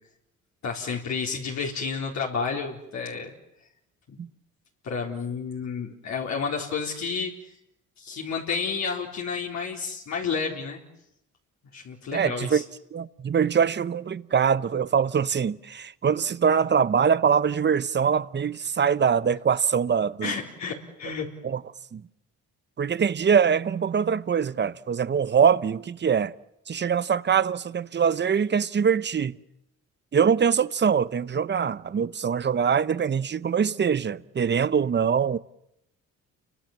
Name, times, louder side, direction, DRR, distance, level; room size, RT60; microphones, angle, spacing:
voice 1, 0.6-3.3 4.1-4.2 4.8-7.3 8.0-10.8 11.7-12.6 20.2-21.3, left 5 dB, 65° left, 4.1 m, -31 dB
voice 2, 12.1-12.6 12.9-20.3 21.4-21.6 21.9-22.0 22.8-26.3 26.7-29.4 30.1-35.4, right 7 dB, 35° right, 0.9 m, -23 dB
29.5 x 24.5 x 7.3 m
cardioid pair, 90°, 30 cm